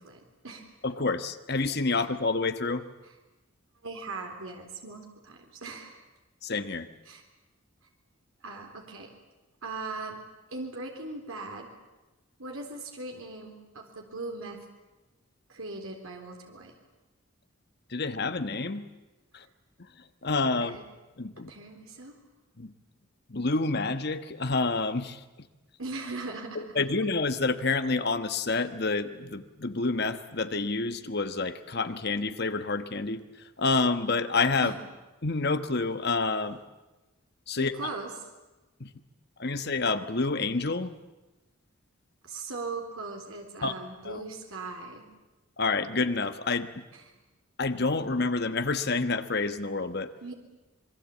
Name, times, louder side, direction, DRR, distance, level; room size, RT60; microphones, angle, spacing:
voice 1, 0.0-0.7 1.9-2.0 3.8-6.0 7.1-7.2 8.4-9.1 9.6-10.2 10.5-11.7 12.4-14.6 15.5-16.7 20.6-20.8 21.5-22.2 25.8-26.6 34.6-34.8 37.6-38.1 42.2-45.1 46.9-47.2 50.2-50.3, right 3 dB, 80° right, 2 dB, 3.8 m, -39 dB
voice 2, 0.8-2.8 6.4-6.9 17.9-18.9 19.3-19.4 20.2-20.8 21.2-21.5 22.6-22.7 23.3-25.2 26.5-33.2 33.6-34.7 35.2-36.6 37.5-37.7 38.8-38.9 39.4-40.9 43.6-43.7 44.0-44.2 45.6-46.7 47.6-50.1, left 3 dB, 50° left, 10 dB, 1.3 m, -28 dB
26.0 x 22.0 x 8.5 m, 1.1 s
head